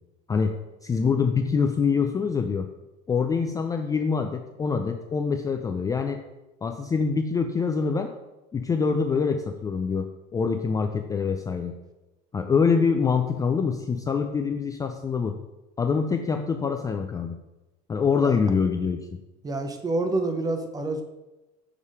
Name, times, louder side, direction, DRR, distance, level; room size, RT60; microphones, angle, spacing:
voice 1, 0.8-2.7 3.1-6.2 6.6-8.1 8.5-11.7 12.3-15.4 15.8-17.4 17.9-19.0, left 5 dB, 20° left, 5 dB, 0.3 m, -25 dB
voice 2, 19.4-21.0, right 2 dB, 20° right, 6 dB, 0.7 m, -27 dB
6.4 x 3.6 x 4.8 m, 1.0 s
cardioid pair, 120°, 20 cm